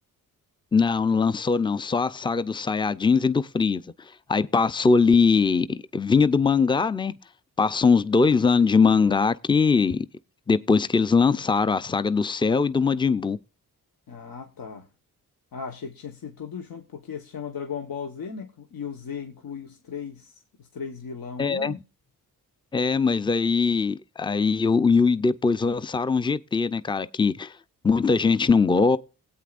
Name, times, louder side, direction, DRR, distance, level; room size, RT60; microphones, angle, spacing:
voice 1, 0.7-3.8 4.3-7.1 7.6-10.1 10.5-13.4 21.4-21.7 22.7-27.5 27.8-29.0, left 5 dB, 15° left, 0.5 m, -21 dB
voice 2, 14.1-14.9 15.5-21.8, left 6 dB, 70° left, 1.4 m, -37 dB
18.0 x 8.6 x 2.5 m
cardioid pair, 55°, 36 cm